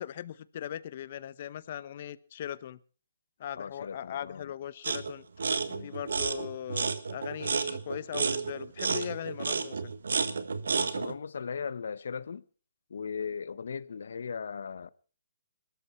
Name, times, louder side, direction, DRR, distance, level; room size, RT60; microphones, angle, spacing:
voice 1, 0.0-2.8 3.4-5.3 5.8-9.9, left 10 dB, 45° left, 1.0 m, -39 dB
voice 2, 3.5-4.5 5.6-6.0 10.7-12.4 12.9-14.9, left 6 dB, 70° left, 1.0 m, -38 dB
sound 1, 4.8-5.1 5.4-11.1, right 5 dB, 80° right, 1.6 m, -31 dB
22.0 x 13.0 x 4.4 m
hypercardioid pair, 155°, 0 cm